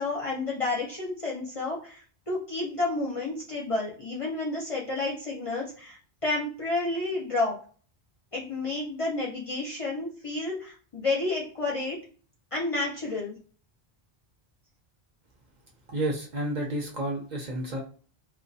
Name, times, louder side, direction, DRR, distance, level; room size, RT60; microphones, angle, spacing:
voice 1, 0.0-2.0 2.3-7.6 8.3-12.0 12.5-13.4, left 2 dB, 40° left, -3 dB, 0.5 m, -30 dB
voice 2, 15.9-17.8, right 1 dB, 50° right, 0 dB, 0.6 m, -30 dB
2.2 x 2.2 x 2.6 m, 0.42 s
omnidirectional pair, 1.1 m